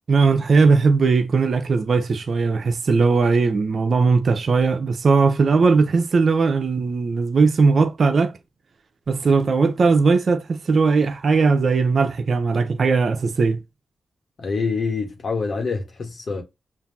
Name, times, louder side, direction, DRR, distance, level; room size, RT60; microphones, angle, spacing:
voice 1, 0.1-8.3 9.1-13.6, right 4 dB, 65° right, 0.6 m, -18 dB
voice 2, 14.4-16.4, left 4 dB, 60° left, 1.4 m, -26 dB
5.7 x 2.6 x 2.7 m
cardioid pair, 50°, 0 cm